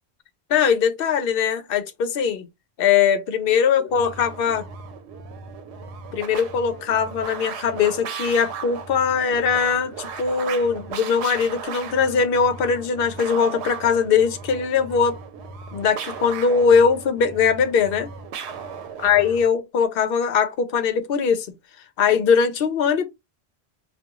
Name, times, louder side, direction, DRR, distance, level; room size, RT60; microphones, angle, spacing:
voice 1, 0.5-2.5 2.8-4.6 6.1-15.2 15.7-18.1 19.0-21.5 22.0-23.0, left 6 dB, 65° left, 0.7 m, -21 dB
sound 1, 3.9-19.5, right 6 dB, 85° right, 0.9 m, -36 dB
2.3 x 2.2 x 2.9 m
omnidirectional pair, 1.1 m